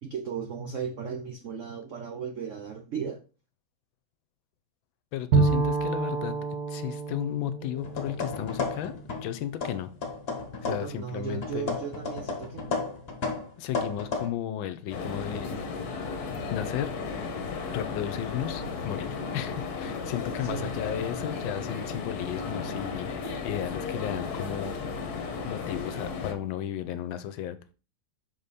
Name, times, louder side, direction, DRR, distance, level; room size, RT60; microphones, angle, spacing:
voice 1, 0.0-3.2 10.7-12.8 20.4-20.8, right 6 dB, 75° right, 0.7 m, -36 dB
voice 2, 5.1-6.3 6.7-9.9 10.6-11.8 13.6-15.6 16.5-16.9 17.7-24.8 25.0-25.2 25.4-27.6, left 11 dB, 75° left, 1.4 m, -34 dB
Bowed string instrument, 5.3-9.0, right 4 dB, 50° right, 1.9 m, -28 dB
sound 1, 7.8-9.3 9.6-11.0 11.4-14.3, left 4 dB, 35° left, 1.2 m, -33 dB
sound 2, 14.9-26.3, left 4 dB, 55° left, 1.3 m, -34 dB
6.0 x 5.2 x 4.1 m
omnidirectional pair, 2.3 m